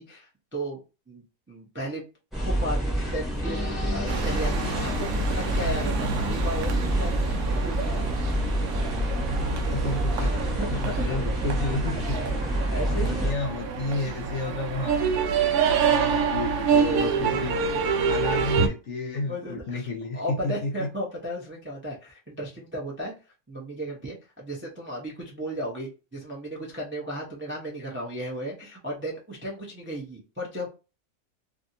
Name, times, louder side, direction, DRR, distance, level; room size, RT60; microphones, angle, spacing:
voice 1, 0.0-2.0 2.4-8.1 10.1-11.3 12.1-13.9 16.7-17.4 19.1-19.9 20.1-23.1 23.5-30.7, right 1 dB, 15° right, -2 dB, 0.4 m, -35 dB
sound 1, 2.3-13.3, right 1 dB, ahead, 1.0 m, -28 dB
sound 2, 3.4-8.3, left 3 dB, 25° left, 1.0 m, -38 dB
sound 3, 4.1-18.7, right 5 dB, 70° right, 1.0 m, -27 dB
voice 2, 9.5-12.4 12.8-15.3 15.6-20.9, left 2 dB, 65° left, 3 dB, 0.8 m, -32 dB
2.7 x 2.6 x 2.6 m, 0.31 s
omnidirectional pair, 1.7 m